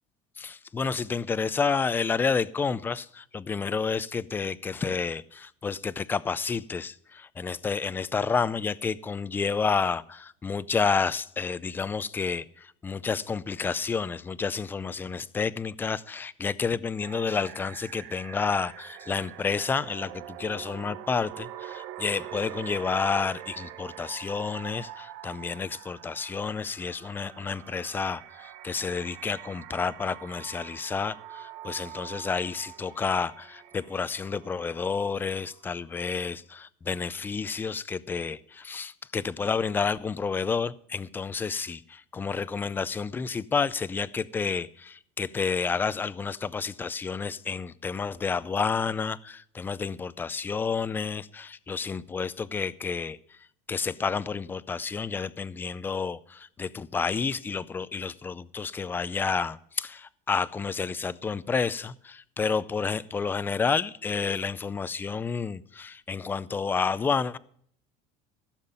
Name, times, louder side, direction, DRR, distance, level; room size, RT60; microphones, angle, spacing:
voice 1, 0.4-53.4 53.7-67.4, left 5 dB, 15° left, 0.4 m, -30 dB
sound 1, 17.0-35.9, right 12 dB, 70° right, 0.9 m, -44 dB
16.0 x 7.3 x 5.3 m
cardioid pair, 155°, 16 cm